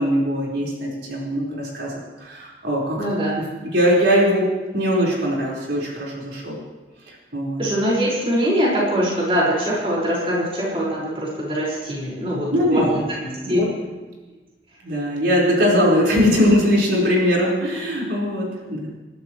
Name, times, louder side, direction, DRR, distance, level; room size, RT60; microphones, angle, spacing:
voice 1, 0.0-3.0 3.7-6.6 7.1-7.6 12.5-12.9 13.2-13.6 14.8-18.9, equal, 85° right, -5 dB, 4.9 m, -21 dB
voice 2, 3.0-3.4 7.6-13.2 13.5-13.6, equal, 30° right, -6 dB, 5.4 m, -22 dB
29.0 x 12.5 x 3.2 m, 1.2 s
head